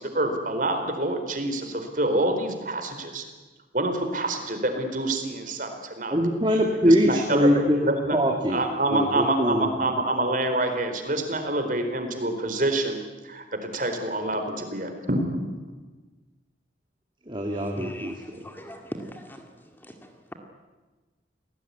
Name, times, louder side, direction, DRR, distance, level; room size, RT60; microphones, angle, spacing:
voice 1, 0.0-3.2 3.7-6.2 6.8-8.2 8.5-13.0 13.2-15.4, right 1 dB, 45° right, 6 dB, 4.3 m, -27 dB
voice 2, 6.1-7.8 8.1-9.9 17.3-18.4, equal, 25° right, 1 dB, 2.5 m, -23 dB
voice 3, 17.7-19.5 19.8-20.3, equal, 10° left, 4 dB, 2.2 m, -40 dB
29.5 x 19.0 x 9.8 m, 1.3 s
head